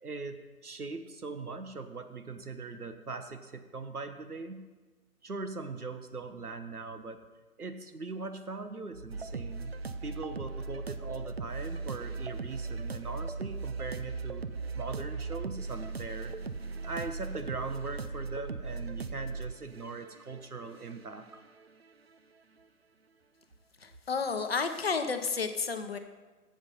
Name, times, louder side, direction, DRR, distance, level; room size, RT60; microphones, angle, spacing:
voice 1, 0.0-4.7 5.2-7.2 7.6-14.5 14.7-16.4 16.8-21.3, right 3 dB, 75° right, 9 dB, 1.1 m, -40 dB
sound 1, 9.1-21.9, right 4 dB, 45° right, 0.4 m, -38 dB
voice 2, 23.8-26.0, left 5 dB, 40° left, 7 dB, 0.8 m, -31 dB
9.7 x 7.8 x 5.4 m, 1.3 s
figure-of-eight pair, 140°, 45 cm